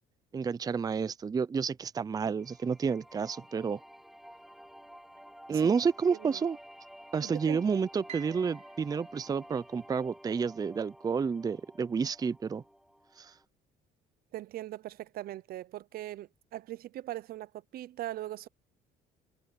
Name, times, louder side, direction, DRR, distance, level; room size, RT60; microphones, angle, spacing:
voice 1, 0.3-3.8 5.5-6.6 7.1-12.6 13.2-13.3, right 6 dB, 20° right, 0.5 m, -30 dB
sound 1, 2.4-13.4, equal, ahead, 4.4 m, -52 dB
voice 2, 7.2-7.6 14.3-18.5, right 14 dB, 65° right, 0.6 m, -40 dB
Piano, 8.1-10.3, right 9 dB, 45° right, 4.3 m, -51 dB
cardioid pair, 110°, 17 cm